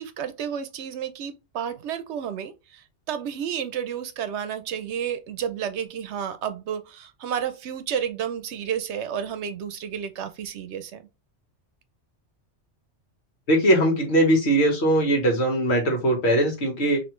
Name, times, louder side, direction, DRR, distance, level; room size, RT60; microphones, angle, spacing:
voice 1, 0.0-11.0, right 8 dB, 75° right, 0.9 m, -31 dB
voice 2, 13.5-17.0, right 1 dB, 65° left, 1.7 m, -20 dB
4.2 x 3.0 x 3.1 m
omnidirectional pair, 1.2 m